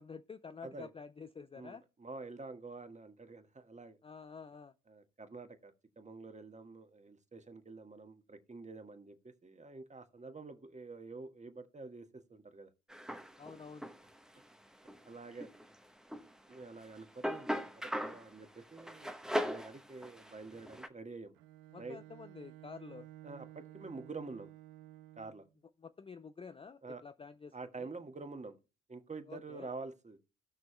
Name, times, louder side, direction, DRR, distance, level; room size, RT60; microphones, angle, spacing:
voice 1, 0.0-1.8 4.0-4.7 13.4-13.9 21.7-23.1 25.8-27.9 29.3-29.7, left 5 dB, 15° left, 0.5 m, -49 dB
voice 2, 1.5-4.0 4.9-12.7 15.0-15.5 16.5-17.5 17.7-21.3 21.8-22.0 23.2-24.5 25.2-25.4 26.8-27.0 27.5-28.6 28.9-30.2, right 3 dB, 20° right, 1.4 m, -48 dB
sound 1, 12.9-14.3 14.9-15.7 16.1-18.3 18.8-20.9, equal, ahead, 1.0 m, -39 dB
Bowed string instrument, 21.3-25.5, right 15 dB, 70° right, 0.8 m, -54 dB
17.5 x 6.1 x 2.2 m
hypercardioid pair, 55°, 36 cm